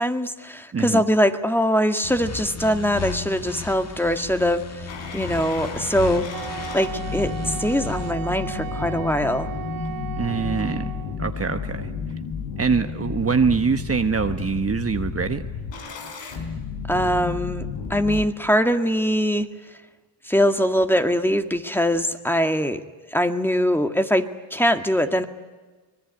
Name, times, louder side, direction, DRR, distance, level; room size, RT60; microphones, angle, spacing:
voice 1, 0.0-6.3 6.7-9.5 16.9-19.5 20.2-22.8 23.1-25.2, equal, 5° left, 7 dB, 2.0 m, -22 dB
voice 2, 0.7-1.0 10.2-10.8 11.2-11.9 12.6-15.4, right 5 dB, 30° right, 7 dB, 1.2 m, -23 dB
sound 1, 2.0-8.1, left 4 dB, 35° left, 1.5 m, -35 dB
sound 2, 4.9-18.3, left 5 dB, 85° left, 4.9 m, -32 dB
Wind instrument woodwind instrument, 6.3-11.2, right 10 dB, 50° right, 1.3 m, -35 dB
25.0 x 21.0 x 9.7 m, 1.3 s
cardioid pair, 85°, 44 cm